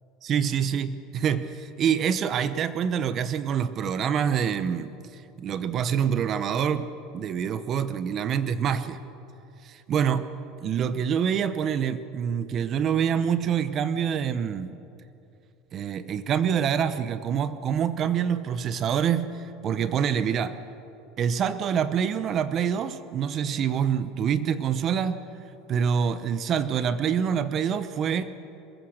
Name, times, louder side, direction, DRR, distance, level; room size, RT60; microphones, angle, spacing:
voice 1, 0.2-4.9 5.4-9.0 9.6-10.3 10.6-14.7 15.7-20.6 21.2-25.2 25.7-28.3, right 8 dB, 35° right, 13 dB, 0.8 m, -26 dB
22.0 x 21.5 x 6.5 m, 2.7 s
cardioid pair, 155°, 0 cm